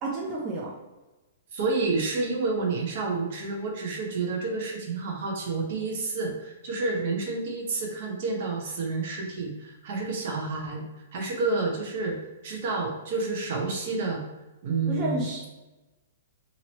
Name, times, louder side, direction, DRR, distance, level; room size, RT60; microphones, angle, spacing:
voice 1, 0.0-0.7 14.9-15.5, right 3 dB, 25° right, -3 dB, 0.6 m, -30 dB
voice 2, 1.5-10.8 11.1-12.2 12.4-14.2 14.6-15.3, right 3 dB, 55° right, 1 dB, 0.9 m, -29 dB
2.9 x 2.8 x 3.0 m, 1.1 s
hypercardioid pair, 145°, 0 cm